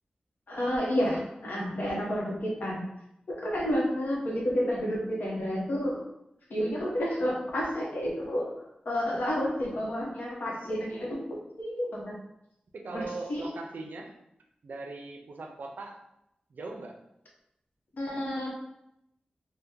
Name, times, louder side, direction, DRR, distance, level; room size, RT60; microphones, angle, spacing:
voice 1, 0.5-2.8 3.3-6.0 6.5-8.5 8.9-12.1 12.9-13.0 13.3-13.4 18.0-18.5, equal, 85° left, -3 dB, 0.8 m, -30 dB
voice 2, 9.1-9.9 12.7-14.1 14.6-16.0 16.5-17.0, right 3 dB, 85° right, 2 dB, 0.5 m, -41 dB
2.8 x 2.1 x 3.5 m, 0.81 s
wide cardioid pair, 110°, 3 cm